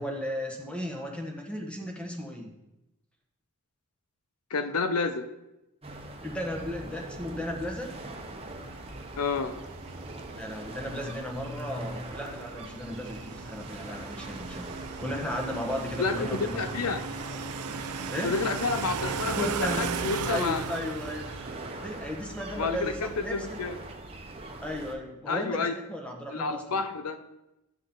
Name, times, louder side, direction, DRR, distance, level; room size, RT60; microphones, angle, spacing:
voice 1, 0.0-2.5 6.2-7.9 10.4-14.7 15.0-16.7 18.1-18.3 19.3-19.9 20.3-21.4 21.8-23.6 24.6-26.8, equal, 5° left, 1 dB, 1.4 m, -35 dB
voice 2, 4.5-5.3 9.2-9.5 16.0-17.0 18.2-20.6 22.5-23.7 25.3-25.7 26.3-27.2, left 4 dB, 80° left, 9 dB, 0.7 m, -29 dB
sound 1, 5.8-24.9, right 1 dB, 25° right, 1.2 m, -42 dB
sound 2, 7.4-23.5, right 6 dB, 90° right, 0.6 m, -38 dB
12.0 x 6.7 x 3.9 m, 0.94 s
head